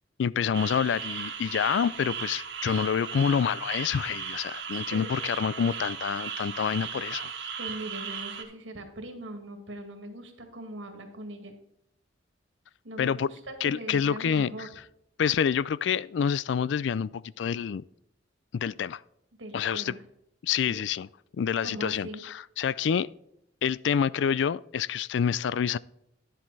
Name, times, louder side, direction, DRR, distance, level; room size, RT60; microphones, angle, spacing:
voice 1, 0.2-7.3 13.0-13.3 13.6-14.7 15.2-17.8 18.5-19.0 19.5-19.9 20.4-21.1 21.4-23.1 23.6-25.8, left 7 dB, 70° left, 0.3 m, -27 dB
sound 1, 0.5-8.4, right 7 dB, 70° right, 1.4 m, -36 dB
voice 2, 7.6-11.5 12.8-14.7 19.4-20.0 20.7-20.8 21.6-22.2, right 1 dB, 85° right, 2.0 m, -40 dB
10.5 x 7.6 x 4.1 m
head